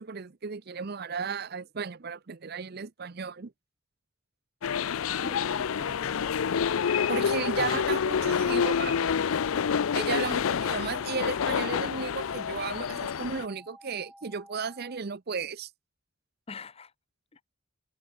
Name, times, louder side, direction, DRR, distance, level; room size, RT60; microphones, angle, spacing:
voice 1, 0.0-3.5 7.1-9.1 9.9-15.7, right 5 dB, 50° right, 0.7 m, -34 dB
sound 1, 4.6-13.4, left 7 dB, 85° left, 0.5 m, -28 dB
voice 2, 5.1-6.7 7.5-7.9 8.2-9.3 10.1-10.5 16.5-16.9 17.3-17.4, left 3 dB, 30° left, 0.8 m, -44 dB
sound 2, 9.3-15.0, equal, ahead, 4.4 m, -52 dB
head